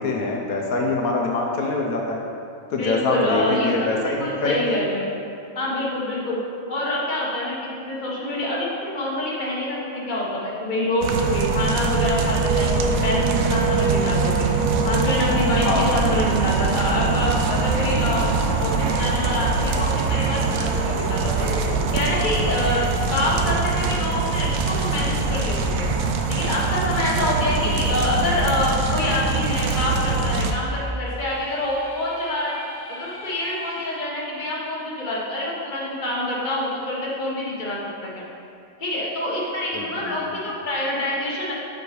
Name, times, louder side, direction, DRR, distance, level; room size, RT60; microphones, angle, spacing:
voice 1, 0.0-2.2 2.7-4.8 15.6-15.9 27.4-27.8 39.7-40.3, left 3 dB, 80° left, 0 dB, 1.2 m, -25 dB
voice 2, 2.8-3.7 4.2-5.1 5.5-6.4 6.7-14.5 14.8-18.3 18.6-21.6 21.9-22.8 23.1-25.9 26.3-32.5 32.9-38.2 38.8-41.5, left 1 dB, 35° left, -5 dB, 1.4 m, -26 dB
sound 1, 11.0-30.5, right 4 dB, 75° right, 1.0 m, -23 dB
sound 2, 31.1-34.0, equal, 65° left, 1.6 m, -41 dB
7.0 x 5.1 x 4.8 m, 2.6 s
omnidirectional pair, 1.5 m